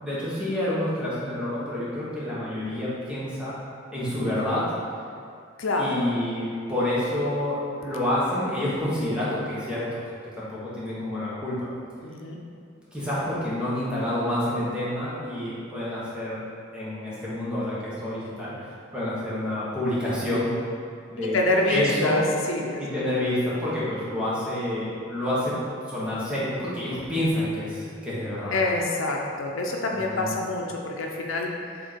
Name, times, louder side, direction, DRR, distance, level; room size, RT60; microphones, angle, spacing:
voice 1, 0.0-3.5 3.9-4.6 5.8-10.0 10.4-11.7 12.9-16.4 16.7-20.5 21.1-21.4 21.7-22.2 22.8-25.5 25.9-28.5 29.9-30.3, left 1 dB, 5° right, -9 dB, 1.4 m, -28 dB
voice 2, 5.6-6.1 12.0-12.4 21.2-22.8 28.5-31.8, left 2 dB, 80° left, 0 dB, 0.6 m, -26 dB
7.4 x 2.9 x 4.4 m, 2.3 s
head